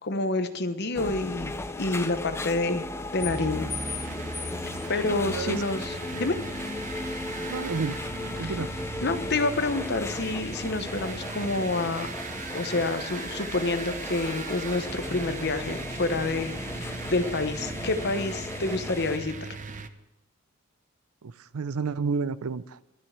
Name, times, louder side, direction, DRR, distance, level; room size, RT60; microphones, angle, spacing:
voice 1, 0.0-2.9 3.1-3.7 4.9-6.4 8.4-8.6 9.0-12.1 12.5-19.5, left 2 dB, 50° left, 1.0 m, -28 dB
sound 1, 1.0-19.2, left 2 dB, 10° left, 0.5 m, -36 dB
sound 2, 3.2-19.9, right 3 dB, 35° right, 0.7 m, -38 dB
voice 2, 5.2-5.8 7.5-8.0 8.4-8.7 21.5-22.6, right 5 dB, 90° right, 0.6 m, -30 dB
12.5 x 10.0 x 7.3 m
head